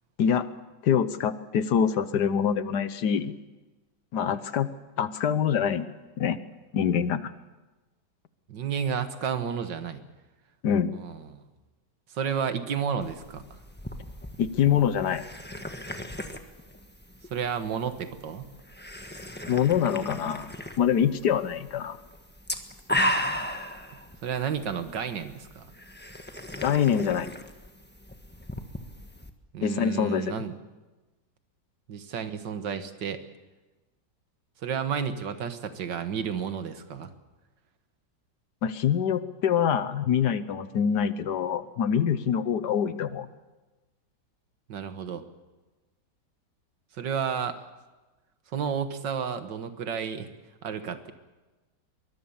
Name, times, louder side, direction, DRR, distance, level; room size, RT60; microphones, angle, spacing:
voice 1, 0.8-3.3 4.1-4.7 5.0-5.9 6.2-6.4 6.7-7.3 10.6-10.9 14.4-15.2 19.5-22.0 26.6-27.3 29.6-30.3 38.6-43.3, left 8 dB, 70° left, 14 dB, 1.5 m, -25 dB
voice 2, 8.5-10.0 10.9-11.4 12.1-13.4 17.3-18.5 24.2-25.7 29.5-30.6 31.9-33.2 34.6-37.1 44.7-45.2 47.0-47.6 48.5-50.3 50.6-51.1, right 7 dB, 80° right, 10 dB, 2.0 m, -31 dB
sound 1, 13.0-29.3, equal, 5° left, 1.1 m, -36 dB
23.0 x 20.5 x 7.2 m, 1.2 s
omnidirectional pair, 1.9 m